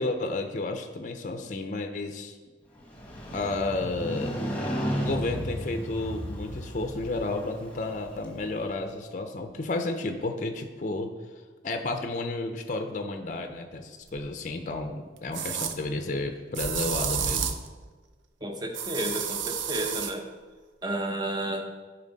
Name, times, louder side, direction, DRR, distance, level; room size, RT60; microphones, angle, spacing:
voice 1, 0.0-2.4 3.3-4.4 5.0-11.1 11.6-17.5, left 2 dB, 40° left, 6 dB, 0.5 m, -32 dB
Motorcycle, 2.8-8.7, equal, 10° left, 1.1 m, -34 dB
sound 1, 14.2-14.3 15.3-15.8 16.5-17.7 18.7-20.1, right 7 dB, 90° right, 0.5 m, -30 dB
voice 2, 18.4-20.2 20.8-21.6, right 1 dB, 20° right, 3 dB, 0.8 m, -31 dB
10.5 x 4.5 x 4.0 m, 1.4 s
head